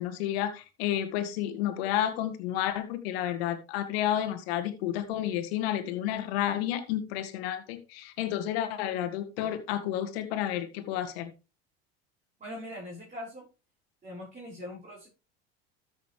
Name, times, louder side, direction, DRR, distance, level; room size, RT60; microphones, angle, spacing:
voice 1, 0.0-11.3, left 11 dB, 70° left, 1.6 m, -31 dB
voice 2, 12.4-13.5 14.0-15.1, left 1 dB, 25° right, 5.5 m, -41 dB
13.5 x 6.4 x 3.2 m
hypercardioid pair, 75°, 31 cm